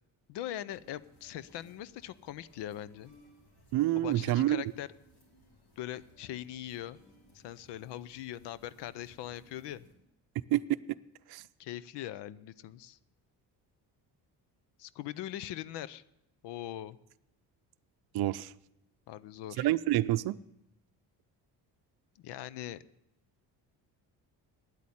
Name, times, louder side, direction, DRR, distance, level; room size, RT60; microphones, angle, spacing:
voice 1, 0.3-3.1 3.9-4.9 5.8-7.0 7.3-9.9 11.6-13.0 14.8-16.0 16.4-17.0 19.1-19.7 22.2-22.8, left 12 dB, 80° left, 19 dB, 0.7 m, -41 dB
sound 1, 0.6-9.9, equal, 60° left, 4.7 m, -62 dB
voice 2, 3.7-4.6 10.5-10.6 11.3-11.4 18.1-18.5 19.6-20.4, right 15 dB, 65° right, 12 dB, 0.6 m, -27 dB
9.9 x 8.4 x 9.8 m, 0.88 s
supercardioid pair, 70°, 42 cm